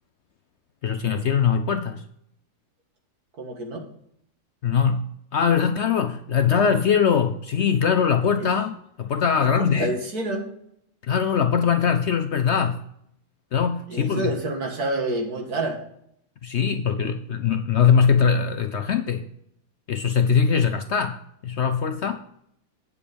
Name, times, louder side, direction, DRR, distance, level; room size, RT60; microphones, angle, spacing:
voice 1, 0.8-2.0 4.6-9.9 11.0-12.8 13.5-14.3 16.4-19.3 19.9-22.2, left 7 dB, 65° left, 7 dB, 0.7 m, -22 dB
voice 2, 3.4-3.8 8.4-8.5 9.6-10.5 13.9-15.8, right 2 dB, 75° right, 2 dB, 2.3 m, -28 dB
8.8 x 6.9 x 5.2 m, 0.71 s
omnidirectional pair, 1.6 m